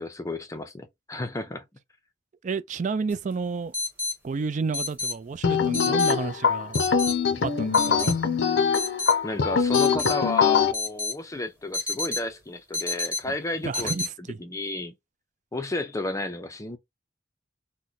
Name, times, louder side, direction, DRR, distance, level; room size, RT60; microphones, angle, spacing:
voice 1, 0.0-1.6 9.2-14.9 15.5-16.8, left 2 dB, 15° left, 0.5 m, -32 dB
voice 2, 2.4-3.7 4.2-6.8 7.4-8.2 13.6-14.4, right 4 dB, 40° right, 0.4 m, -31 dB
sound 1, 3.1-3.2 3.7-4.1 4.7-5.1 5.7-6.1 6.7-7.2 7.7-8.1 8.7-9.1 9.7-10.1 10.7-11.1 11.7-12.3 12.7-13.2 13.7-14.1, left 3 dB, 10° right, 1.1 m, -29 dB
sound 2, 5.4-10.7, left 6 dB, 65° left, 0.5 m, -23 dB
2.8 x 2.1 x 3.9 m
head